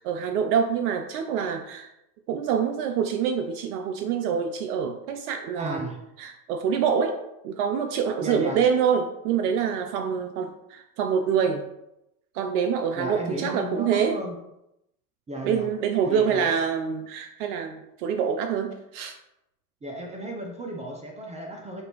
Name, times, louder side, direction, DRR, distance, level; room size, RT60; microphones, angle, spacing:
voice 1, 0.0-1.9 2.3-5.9 6.2-7.2 7.4-11.7 12.3-14.2 15.4-19.1, right 7 dB, 70° right, 5 dB, 0.6 m, -26 dB
voice 2, 5.6-6.0 8.2-8.6 13.0-14.4 15.3-15.7 16.0-16.5 19.8-21.8, right 1 dB, 15° right, 1 dB, 0.5 m, -34 dB
5.2 x 2.6 x 3.0 m, 0.85 s
hypercardioid pair, 95°, 49 cm